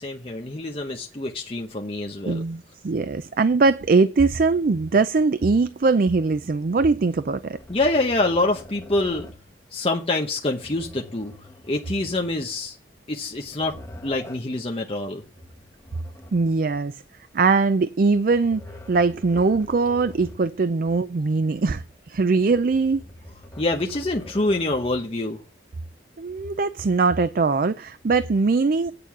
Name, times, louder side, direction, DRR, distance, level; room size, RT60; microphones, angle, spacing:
voice 1, 0.0-2.4 7.7-9.3 9.7-11.3 11.7-12.8 13.1-15.2 23.6-25.4, left 2 dB, 35° left, 0.9 m, -26 dB
voice 2, 2.2-7.6 16.3-17.0 17.3-18.6 18.9-23.0 26.2-28.9, right 4 dB, 50° right, 0.4 m, -21 dB
sound 1, 7.4-9.5 10.5-12.7 13.2-14.6 15.3-16.8 18.1-20.6 20.9-21.0 22.4-25.2, left 1 dB, 15° left, 1.3 m, -44 dB
8.8 x 6.8 x 5.9 m
head